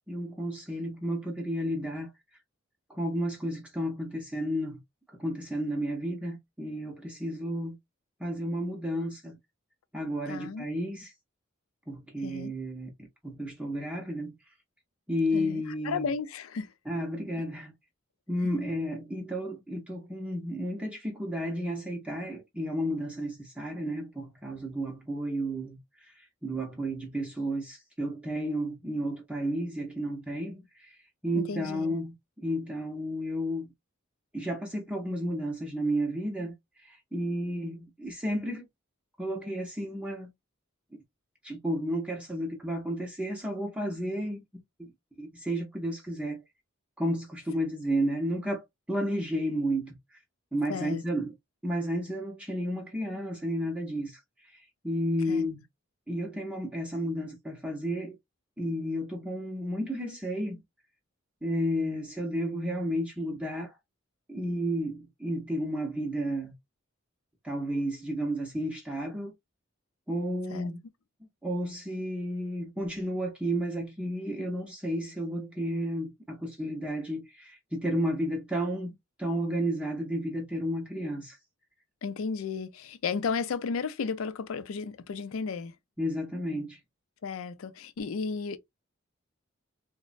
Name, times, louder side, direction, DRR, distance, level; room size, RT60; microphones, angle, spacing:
voice 1, 0.1-2.1 2.9-4.8 5.1-7.7 8.2-9.4 9.9-11.1 11.9-12.9 13.2-14.3 15.1-16.1 16.9-17.7 18.3-26.1 26.4-30.9 31.2-32.1 32.4-33.7 34.3-36.5 36.8-38.7 39.2-40.3 41.4-44.4 44.8-44.9 45.2-46.4 47.0-50.2 50.5-51.3 51.6-54.2 54.5-55.6 56.1-58.2 58.6-60.6 61.4-63.7 64.3-66.5 67.4-69.3 70.1-70.8 71.4-78.9 79.2-81.4 86.0-86.8, equal, 5° right, 0.5 m, -32 dB
voice 2, 10.3-10.7 12.2-12.5 15.3-16.7 31.3-32.0 50.7-51.0 55.3-55.5 70.5-70.7 82.0-85.7 87.2-88.6, left 5 dB, 90° left, 0.4 m, -34 dB
3.1 x 2.0 x 2.4 m
head